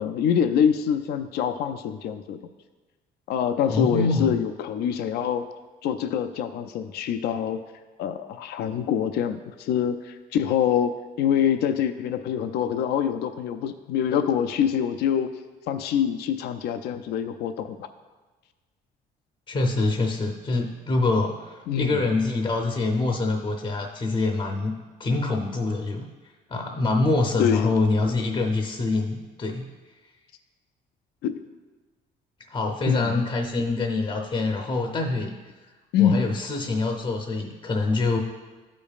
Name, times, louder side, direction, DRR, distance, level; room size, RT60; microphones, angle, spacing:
voice 1, 0.0-2.4 3.3-5.5 5.8-7.6 8.0-15.3 15.7-17.9 21.7-22.0 27.4-27.8 31.2-31.4 32.9-33.2 35.9-36.3, left 8 dB, 75° left, 9 dB, 0.4 m, -25 dB
voice 2, 3.7-4.3 19.5-24.7 25.0-26.1 26.5-29.7 32.5-35.4 36.0-38.2, left 3 dB, 30° left, 2 dB, 0.7 m, -25 dB
13.0 x 5.2 x 2.4 m, 1.3 s
cardioid pair, 110°, 17 cm